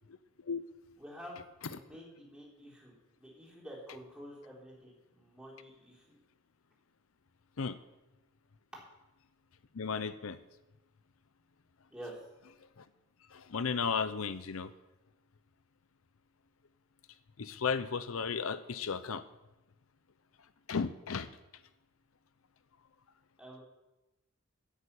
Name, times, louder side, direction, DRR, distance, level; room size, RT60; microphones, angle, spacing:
voice 1, 1.0-6.2 11.9-12.2 23.4-23.6, equal, 5° right, -4 dB, 3.9 m, -49 dB
voice 2, 9.7-10.4 12.4-12.8 13.3-14.7 17.4-19.2 20.7-21.3, left 5 dB, 80° left, 13 dB, 0.6 m, -35 dB
11.0 x 8.6 x 8.5 m, 1.0 s
head